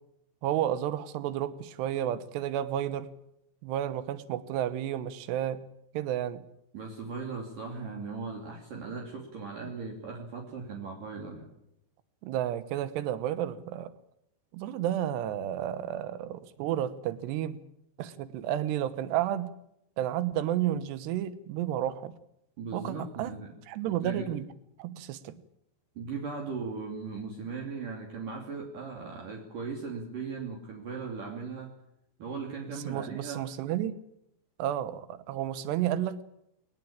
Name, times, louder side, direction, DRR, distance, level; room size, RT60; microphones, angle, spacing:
voice 1, 0.4-3.1 3.6-5.6 5.9-6.4 12.2-13.9 14.5-17.6 18.0-19.5 20.0-22.1 22.7-23.3 23.7-24.5 24.8-25.3 32.7-34.0 34.6-36.5, right 11 dB, 75° right, 14 dB, 3.2 m, -31 dB
voice 2, 6.7-11.5 22.6-23.5 24.0-24.3 26.0-31.7 32.2-33.4, right 4 dB, 50° right, 1 dB, 4.1 m, -38 dB
21.0 x 19.0 x 8.8 m, 0.79 s
omnidirectional pair, 5.1 m